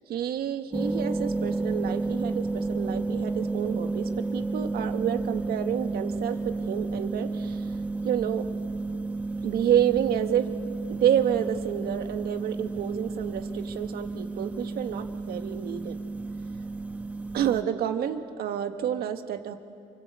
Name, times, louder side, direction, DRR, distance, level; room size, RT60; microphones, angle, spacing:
voice 1, 0.1-6.4 6.7-7.7 8.0-8.4 9.4-10.6 10.9-16.0 17.3-19.5, right 10 dB, 65° right, 7 dB, 1.6 m, -29 dB
sound 1, 0.7-17.6, right 3 dB, 10° right, 1.2 m, -32 dB
29.0 x 24.0 x 8.4 m, 2.6 s
cardioid pair, 110°, 17 cm